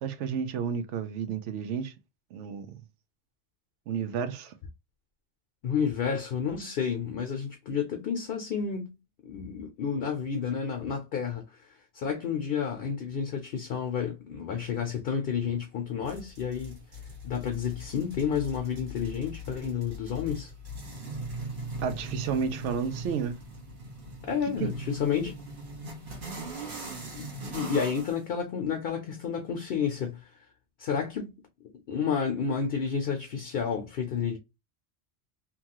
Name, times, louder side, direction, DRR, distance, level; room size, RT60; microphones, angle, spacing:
voice 1, 0.0-1.9 2.3-2.8 3.9-4.5 21.8-23.4 24.5-24.7, right 7 dB, 90° right, 0.9 m, -31 dB
voice 2, 5.6-9.0 9.2-11.7 11.9-16.8 17.2-20.5 24.2-25.4 27.2-30.3 30.8-31.3 31.9-34.4, left 7 dB, 60° left, 0.7 m, -30 dB
sound 1, 16.0-28.2, right 1 dB, 50° right, 1.1 m, -40 dB
2.9 x 2.3 x 2.8 m
omnidirectional pair, 1.2 m